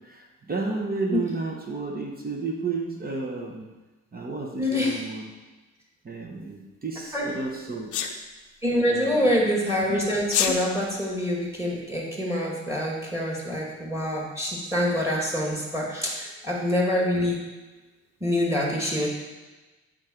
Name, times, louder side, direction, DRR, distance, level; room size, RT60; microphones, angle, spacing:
voice 1, 0.0-3.7 4.1-5.3 6.0-8.0 8.9-9.3, right 3 dB, 30° right, 0 dB, 1.0 m, -32 dB
voice 2, 4.6-5.0 7.1-7.3 8.6-17.4 18.2-19.1, left 1 dB, 10° right, -3 dB, 2.0 m, -26 dB
Sneeze, 7.9-8.1 10.2-10.6, left 8 dB, 75° left, 0.7 m, -24 dB
8.8 x 3.8 x 4.5 m, 1.2 s
cardioid pair, 90°, 30 cm